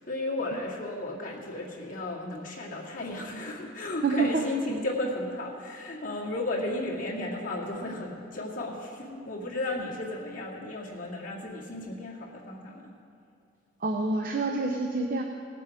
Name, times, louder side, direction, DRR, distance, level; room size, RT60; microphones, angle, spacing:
voice 1, 0.0-12.9, left 2 dB, 45° left, -4 dB, 2.1 m, -34 dB
voice 2, 4.0-4.5 13.8-15.2, right 3 dB, 50° right, 3 dB, 0.7 m, -27 dB
18.5 x 7.5 x 4.9 m, 2.5 s
head